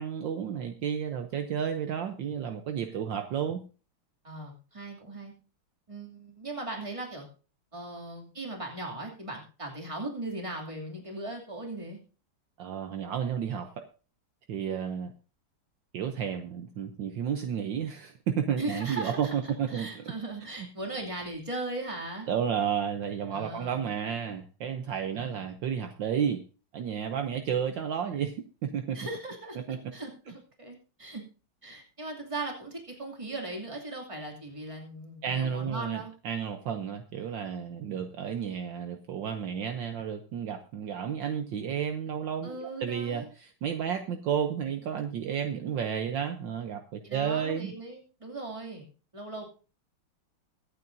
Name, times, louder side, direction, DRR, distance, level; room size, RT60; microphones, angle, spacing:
voice 1, 0.0-3.6 12.6-13.8 14.5-15.1 15.9-20.0 20.6-20.7 22.3-26.4 26.7-28.3 28.6-29.0 29.7-29.8 30.3-30.4 35.2-36.0 36.2-47.7, right 8 dB, 70° right, 6 dB, 1.5 m, -32 dB
voice 2, 4.2-5.3 5.9-7.3 7.7-12.0 18.6-19.3 19.7-22.3 23.3-23.9 25.1-25.4 28.9-29.6 29.9-31.2 31.6-36.1 42.4-43.3 47.0-49.4, right 2 dB, 15° right, 0 dB, 2.6 m, -38 dB
23.5 x 8.5 x 2.7 m, 0.35 s
omnidirectional pair, 2.2 m